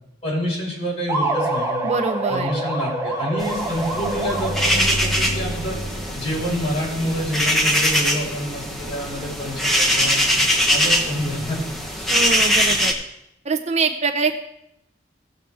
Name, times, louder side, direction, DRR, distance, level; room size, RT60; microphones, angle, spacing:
voice 1, 0.2-1.8 2.3-5.8 6.1-10.3 10.7-11.6 12.0-12.1, equal, 35° left, -5 dB, 5.0 m, -27 dB
sound 1, 1.1-5.0, right 2 dB, 15° right, 1.5 m, -26 dB
voice 2, 1.8-2.5 12.1-12.9 13.4-14.3, right 4 dB, 40° right, 6 dB, 0.6 m, -23 dB
sound 2, 3.4-12.9, equal, ahead, 1.2 m, -22 dB
sound 3, 3.5-8.4, equal, 60° left, 1.1 m, -32 dB
17.0 x 7.3 x 3.5 m, 0.80 s
head